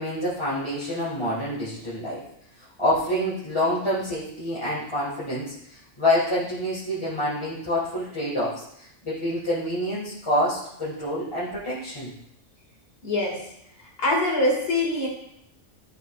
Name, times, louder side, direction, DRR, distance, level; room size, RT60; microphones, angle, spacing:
voice 1, 0.0-2.2 2.6-12.1, left 1 dB, 25° left, -9 dB, 1.8 m, -27 dB
voice 2, 13.0-13.5 13.8-15.1, left 1 dB, 50° left, -2 dB, 2.2 m, -24 dB
12.0 x 5.4 x 2.4 m, 0.76 s
omnidirectional pair, 1.3 m